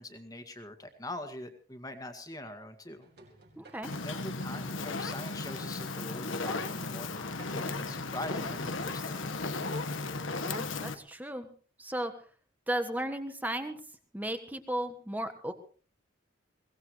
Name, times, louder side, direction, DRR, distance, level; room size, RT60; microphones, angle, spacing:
voice 1, 0.0-3.1 4.0-9.2, left 1 dB, 20° left, 7 dB, 2.0 m, -43 dB
sound 1, 3.0-10.5, right 2 dB, 55° right, 5.7 m, -55 dB
voice 2, 3.6-3.9 10.4-11.5 11.8-12.1 12.7-13.8 14.1-15.5, right 1 dB, 10° right, 8 dB, 1.4 m, -35 dB
Fire, 3.8-10.9, left 3 dB, 85° left, 1.5 m, -35 dB
22.5 x 18.5 x 3.2 m, 0.40 s
head